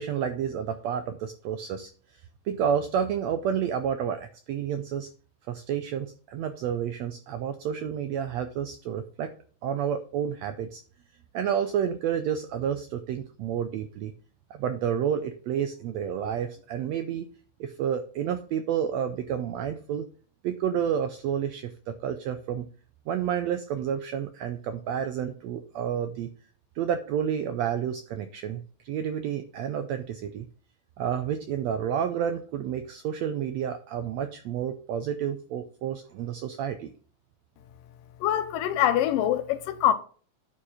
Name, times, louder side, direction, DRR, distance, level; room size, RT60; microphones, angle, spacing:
voice 1, 0.0-1.9 2.5-5.1 5.5-9.3 9.6-10.8 11.3-14.1 14.5-17.3 17.6-20.1 20.4-22.7 23.1-26.3 26.8-30.5 31.0-36.9, right 8 dB, 85° right, 1.5 m, -30 dB
voice 2, 38.2-39.9, left 11 dB, 85° left, 2.5 m, -24 dB
9.7 x 4.5 x 5.6 m
omnidirectional pair, 3.8 m